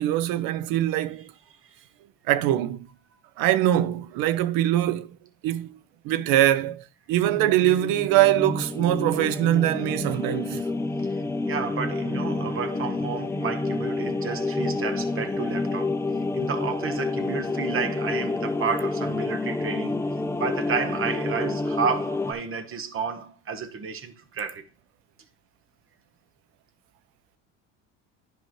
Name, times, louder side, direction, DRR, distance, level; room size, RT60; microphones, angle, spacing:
voice 1, 0.0-1.3 2.3-2.9 3.4-5.1 5.4-5.7 6.0-10.6, right 13 dB, 70° right, 0.7 m, -23 dB
sound 1, 7.2-22.3, left 2 dB, 10° left, 0.4 m, -29 dB
voice 2, 11.1-16.0 16.3-24.6, right 6 dB, 35° right, 1.2 m, -31 dB
10.0 x 5.0 x 3.1 m
supercardioid pair, 100°, 36 cm